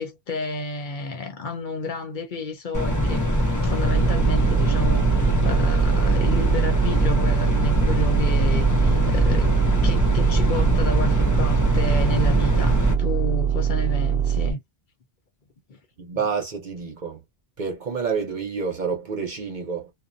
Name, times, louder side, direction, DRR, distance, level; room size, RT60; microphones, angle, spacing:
voice 1, 0.0-3.3 3.6-9.6 9.8-14.6 15.7-15.8 16.1-16.3, left 3 dB, 55° left, 0.8 m, -31 dB
sound 1, 2.7-12.9, equal, 25° left, 0.5 m, -22 dB
sound 2, 3.8-14.5, right 9 dB, 80° right, 0.8 m, -23 dB
voice 2, 16.0-17.2 17.6-19.9, right 5 dB, 50° right, 0.9 m, -28 dB
2.4 x 2.1 x 2.6 m
omnidirectional pair, 1.0 m